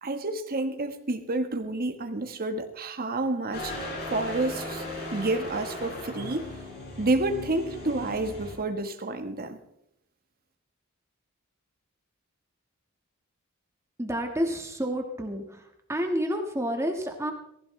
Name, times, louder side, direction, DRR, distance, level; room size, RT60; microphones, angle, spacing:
voice 1, 0.0-4.8 5.1-6.5 7.0-9.6, right 2 dB, 45° right, 6 dB, 1.3 m, -29 dB
sound 1, 3.5-8.6, left 1 dB, 50° left, 5.2 m, -37 dB
voice 2, 14.0-15.6 15.9-17.3, equal, 15° right, 3 dB, 1.5 m, -29 dB
19.0 x 15.5 x 3.2 m, 0.75 s
head